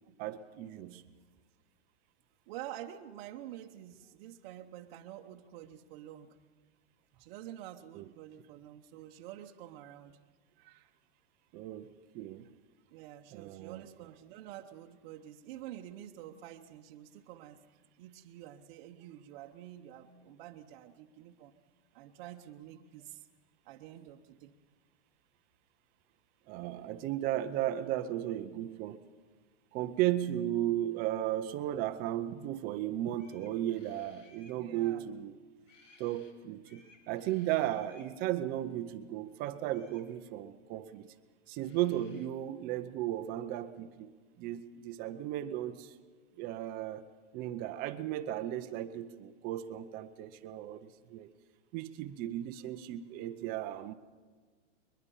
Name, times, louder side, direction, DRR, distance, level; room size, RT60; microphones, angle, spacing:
voice 1, 0.2-1.0 7.9-8.1 11.5-12.5 13.3-13.8 26.5-29.0 29.7-35.3 36.0-41.1 41.5-44.1 44.4-45.9 46.4-47.0 47.3-51.3 51.7-53.9, right 13 dB, 25° right, 11 dB, 0.7 m, -35 dB
voice 2, 2.5-6.4 7.1-10.2 10.6-10.9 12.9-17.6 18.0-21.5 21.9-23.3 23.6-24.5 29.9-30.0 34.6-35.1, right 12 dB, 40° right, 2 dB, 1.0 m, -48 dB
sound 1, 32.8-32.9 33.1-34.6 35.6-36.3 36.6-38.1 39.7-40.1 41.3-41.4 41.6-42.3, left 3 dB, 90° left, 3.6 m, -62 dB
22.0 x 21.5 x 5.6 m, 1.5 s
supercardioid pair, 150°, 37 cm